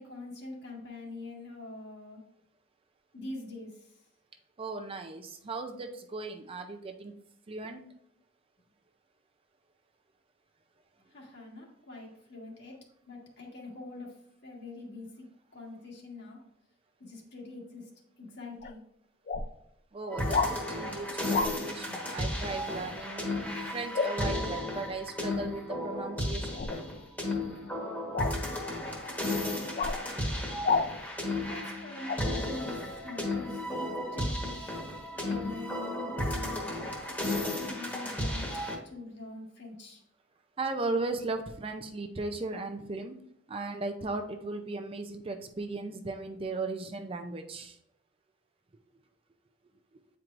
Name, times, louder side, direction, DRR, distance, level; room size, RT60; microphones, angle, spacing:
voice 1, 0.0-2.2 3.1-4.0 11.1-15.2 15.5-16.4 17.0-18.8 31.5-34.6 35.1-37.0 37.3-38.5 38.8-40.0, left 2 dB, 60° left, -1 dB, 1.6 m, -44 dB
voice 2, 4.6-7.1 7.5-7.8 19.9-21.1 21.4-23.2 23.7-26.7 40.6-43.1 43.5-47.7, right 3 dB, 30° right, 5 dB, 0.4 m, -36 dB
sound 1, 18.6-18.7 19.3-19.5 20.3-20.5 21.3-21.5 23.9-24.1 26.5-26.8 28.1-28.3 29.8-30.0 30.6-30.9 32.1-32.2, left 4 dB, 40° left, 0.4 m, -28 dB
sound 2, 20.1-38.8, left 1 dB, 10° left, 1.2 m, -34 dB
8.7 x 4.6 x 2.5 m, 0.74 s
head